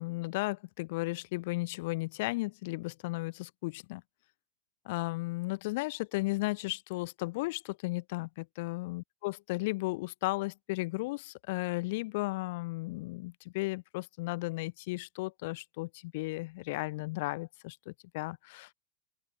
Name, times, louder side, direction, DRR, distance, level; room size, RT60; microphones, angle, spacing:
voice 1, 0.0-4.0 4.8-18.7, left 22 dB, 60° left, 0.9 m, -35 dB
open air
supercardioid pair, 140°, 0 cm